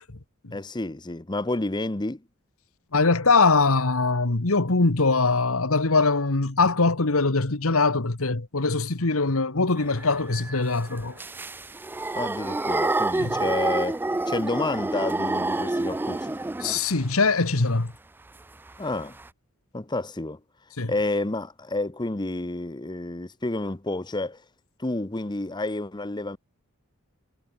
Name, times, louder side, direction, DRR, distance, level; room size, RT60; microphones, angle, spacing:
voice 1, 0.5-2.2 12.1-14.0 14.3-16.4 18.8-19.2 19.7-20.4 20.9-24.4 24.8-26.4, left 2 dB, 20° left, 0.8 m, -29 dB
voice 2, 2.9-11.2 13.2-13.4 16.6-17.9 20.8-20.9, left 3 dB, 70° left, 1.5 m, -22 dB
sound 1, 9.8-17.1 18.7-18.8 19.0-19.3, right 2 dB, 10° right, 0.3 m, -28 dB
head